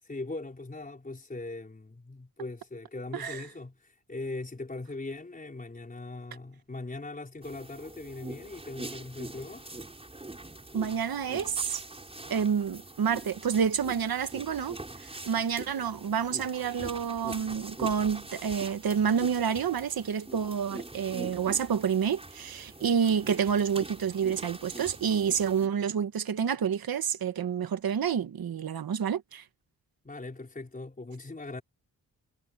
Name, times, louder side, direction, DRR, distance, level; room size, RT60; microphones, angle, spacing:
voice 1, 0.0-9.6 30.0-31.6, left 2 dB, 25° left, 4.4 m, -40 dB
sound 1, 7.4-25.7, right 2 dB, 15° right, 6.1 m, -43 dB
voice 2, 10.7-11.8 12.3-29.4, right 7 dB, 70° right, 1.4 m, -29 dB
wide cardioid pair, 165°, 37 cm